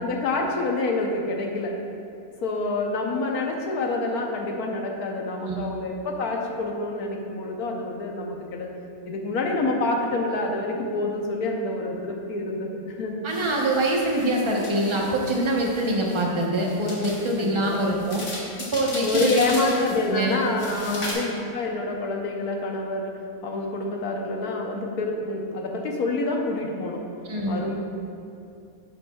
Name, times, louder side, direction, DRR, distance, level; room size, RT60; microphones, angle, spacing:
voice 1, 0.0-1.8 2.4-8.7 9.1-13.2 17.4-17.8 19.0-27.1 27.5-27.8, left 2 dB, 85° left, 1 dB, 1.4 m, -27 dB
voice 2, 13.2-18.2 18.6-19.6 19.9-20.4 20.9-21.0 27.2-27.6, right 1 dB, 20° right, -2 dB, 1.0 m, -24 dB
sound 1, 13.3-21.1, left 2 dB, 55° left, 1.7 m, -37 dB
10.5 x 7.8 x 2.4 m, 2.5 s
omnidirectional pair, 1.5 m